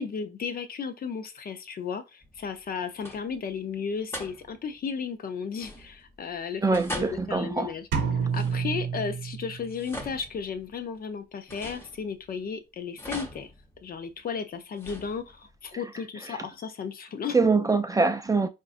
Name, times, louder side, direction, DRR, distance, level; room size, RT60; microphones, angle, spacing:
voice 1, 0.0-6.6 7.0-13.5 13.8-17.4, left 6 dB, 50° left, 0.6 m, -34 dB
sound 1, 2.2-2.7 3.0-3.5 4.1-4.8 5.5-6.2 6.7-9.0 9.6-10.9 11.5-12.4 13.0-14.2 14.7-15.6, equal, 10° left, 0.8 m, -42 dB
voice 2, 6.6-7.7 16.3-16.4 17.3-18.5, right 4 dB, 15° right, 0.4 m, -24 dB
sound 2, 7.9-9.9, right 6 dB, 90° right, 0.9 m, -29 dB
4.5 x 2.5 x 2.5 m
cardioid pair, 90°, 20 cm